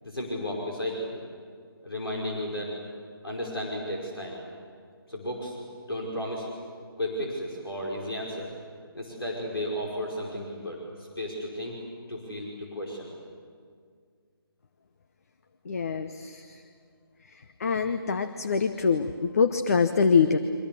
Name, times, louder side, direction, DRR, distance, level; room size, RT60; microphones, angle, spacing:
voice 1, 0.0-1.1 1.8-2.7 3.2-4.4 5.1-5.6 5.9-6.5 7.0-8.5 8.9-11.8 12.1-13.1, equal, 70° left, -2 dB, 5.1 m, -33 dB
voice 2, 15.7-16.4 17.6-20.4, left 5 dB, 35° left, 9 dB, 0.9 m, -24 dB
30.0 x 24.0 x 7.0 m, 2.1 s
figure-of-eight pair, 150°, 13 cm